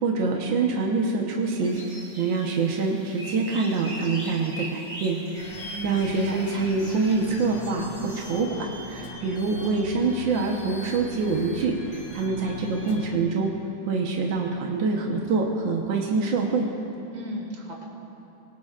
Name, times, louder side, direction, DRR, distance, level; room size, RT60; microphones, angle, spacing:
voice 1, 0.0-1.8 2.2-13.5 13.9-16.7, right 4 dB, 70° right, 0 dB, 1.9 m, -25 dB
sound 1, 1.6-8.3, right 1 dB, 25° right, 4.1 m, -41 dB
sound 2, 5.4-13.2, left 2 dB, 50° left, 2.1 m, -40 dB
voice 2, 5.7-6.5 17.1-17.8, right 1 dB, 50° right, -1 dB, 2.6 m, -37 dB
25.0 x 21.5 x 2.5 m, 2.8 s
omnidirectional pair, 2.2 m